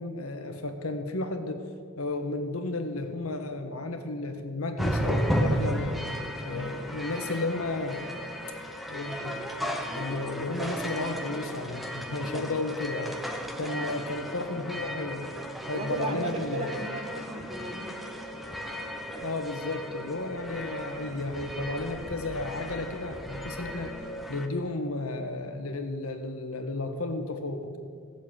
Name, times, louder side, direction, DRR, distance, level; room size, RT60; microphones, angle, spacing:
voice 1, 0.0-1.7 2.0-6.0 6.4-8.0 8.9-9.4 9.9-13.2 13.6-15.3 15.7-16.8 19.2-24.0 24.3-27.8, left 2 dB, 80° left, 6 dB, 1.5 m, -33 dB
sound 1, 4.8-24.5, equal, ahead, 1.1 m, -34 dB
voice 2, 13.6-14.2 15.7-18.0, right 2 dB, 30° right, 4 dB, 1.8 m, -36 dB
17.0 x 7.3 x 8.9 m, 2.1 s
head